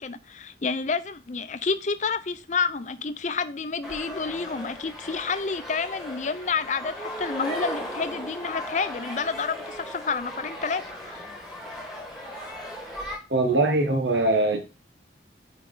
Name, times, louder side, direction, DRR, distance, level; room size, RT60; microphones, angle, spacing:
voice 1, 0.0-11.3, left 5 dB, 40° left, 0.6 m, -29 dB
sound 1, 3.8-13.2, equal, ahead, 2.2 m, -37 dB
voice 2, 13.3-14.6, right 2 dB, 85° right, 1.4 m, -22 dB
8.9 x 4.5 x 3.9 m
head